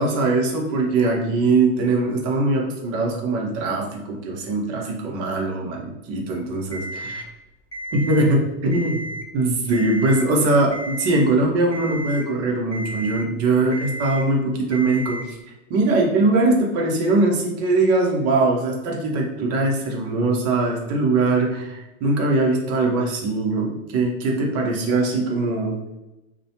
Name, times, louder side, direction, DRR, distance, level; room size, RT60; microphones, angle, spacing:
voice 1, 0.0-7.2 7.9-9.0 9.3-15.4 15.7-25.9, right 2 dB, 40° right, -1 dB, 0.8 m, -21 dB
Alarm, 6.7-7.3 7.7-8.3 8.7-9.3 9.7-10.3 10.7-11.3 11.7-12.3 12.7-13.3 13.7-14.3 14.7-15.3, right 1 dB, 10° left, 0.5 m, -33 dB
2.3 x 2.1 x 2.8 m, 0.99 s
hypercardioid pair, 110°, 38 cm